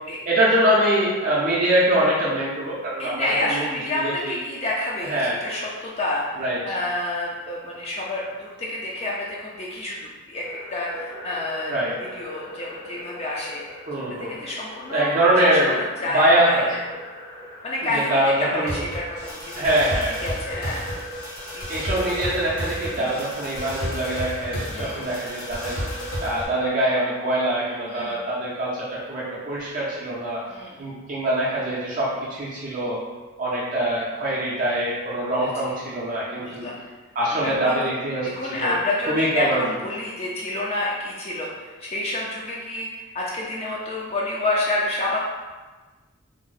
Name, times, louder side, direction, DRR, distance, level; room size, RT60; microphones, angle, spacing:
voice 1, 0.3-3.7 4.0-4.4 5.1-5.4 6.4-6.6 11.7-12.0 13.9-14.4 14.9-15.8 16.1-16.7 17.9-18.8 19.6-20.1 21.7-25.8 26.2-30.4 30.8-33.0 33.4-36.7 37.2-38.8 39.1-39.6, right 1 dB, 35° right, -7 dB, 0.4 m, -23 dB
voice 2, 3.0-6.2 6.6-10.4 10.7-13.8 14.1-15.2 15.5-16.8 17.6-19.8 20.2-20.8 21.5-21.9 22.3-22.4 23.0-23.2 24.7-25.1 27.9-28.2 30.5-30.8 35.3-35.7 36.4-36.8 37.3-37.9 38.2-45.2, left 2 dB, 30° left, -4 dB, 0.3 m, -29 dB
sound 1, 10.4-26.4, equal, 90° left, 1.2 m, -34 dB
2.6 x 2.0 x 3.9 m, 1.3 s
head